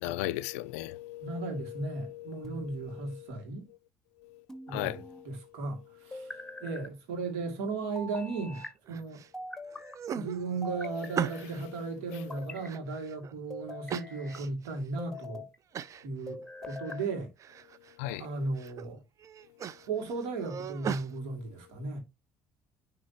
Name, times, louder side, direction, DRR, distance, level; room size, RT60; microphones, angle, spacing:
voice 1, 0.0-3.3 4.7-5.3 11.3-12.4 18.0-18.3, left 15 dB, 75° left, 0.4 m, -38 dB
voice 2, 1.2-3.7 4.7-5.0 5.3-9.2 10.1-15.4 16.0-17.3 18.2-19.0 19.8-22.0, right 3 dB, 70° right, 2.4 m, -36 dB
sound 1, 2.4-3.1 4.5-5.3 6.1-6.9 8.0-8.7 9.3-10.0 10.6-11.5 12.1-12.8 13.5-14.4 15.0-15.6 16.3-17.1, left 2 dB, 5° left, 1.3 m, -43 dB
sound 2, 8.5-9.3 9.7-11.7 12.1-13.3 13.9-14.7 15.1-15.2 15.7-16.1 16.4-17.1 17.4-17.9 18.4-18.8 19.2-21.1, right 8 dB, 45° right, 0.5 m, -38 dB
10.0 x 3.6 x 2.8 m
hypercardioid pair, 60°, 8 cm